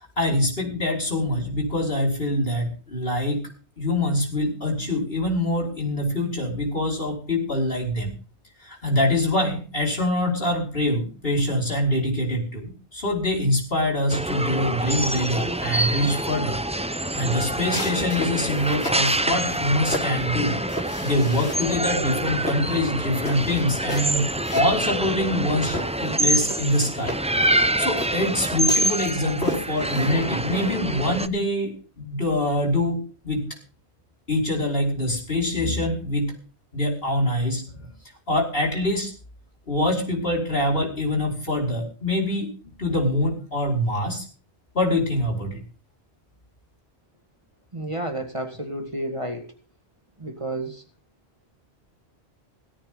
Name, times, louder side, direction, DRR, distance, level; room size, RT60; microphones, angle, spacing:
voice 1, 0.0-3.4 3.8-8.1 8.6-16.6 17.0-20.6 21.0-27.2 27.5-31.7 32.0-33.0 33.2-33.4 34.3-36.3 36.7-37.9 38.3-39.1 39.7-42.5 42.8-44.2 44.7-45.6, left 1 dB, 60° left, 0 dB, 5.5 m, -24 dB
sound 1, 14.1-31.3, right 1 dB, 10° right, 0.5 m, -26 dB
sound 2, 17.6-19.1 19.5-21.8 22.1-25.4 25.7-30.8, left 1 dB, 85° left, 3.1 m, -34 dB
voice 2, 47.7-49.5 50.2-50.8, right 1 dB, 30° right, 5 dB, 2.0 m, -31 dB
17.5 x 13.0 x 3.9 m, 0.37 s
omnidirectional pair, 1.1 m